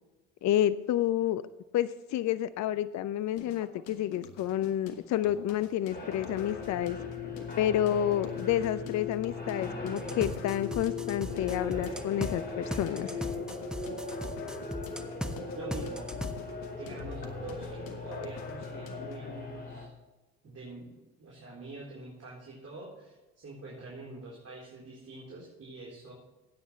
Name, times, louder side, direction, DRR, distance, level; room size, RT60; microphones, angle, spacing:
voice 1, 0.4-1.4 1.7-7.0 7.6-13.1, left 11 dB, 50° left, 15 dB, 0.6 m, -29 dB
sound 1, 3.4-19.4, left 6 dB, 70° left, 1.3 m, -48 dB
sound 2, 5.9-19.8, left 3 dB, 25° left, 4.3 m, -39 dB
sound 3, 10.0-12.3 12.7-15.3 15.7-16.3, equal, ahead, 1.3 m, -37 dB
voice 2, 15.5-16.3 16.7-19.9 20.4-26.1, right 2 dB, 40° right, -4 dB, 4.0 m, -45 dB
15.5 x 9.4 x 3.2 m, 1.1 s
hypercardioid pair, 55°, 37 cm